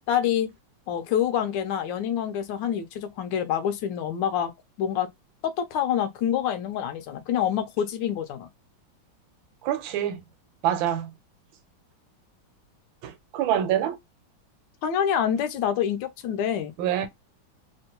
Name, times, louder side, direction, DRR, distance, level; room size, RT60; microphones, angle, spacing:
voice 1, 0.1-0.5 0.9-4.5 4.8-5.1 5.4-8.5 14.8-16.7, left 9 dB, 75° left, 1.2 m, -26 dB
voice 2, 9.6-10.2 10.6-11.1 13.0-14.0 16.8-17.1, right 10 dB, 75° right, 1.4 m, -26 dB
3.4 x 2.2 x 2.8 m
omnidirectional pair, 2.2 m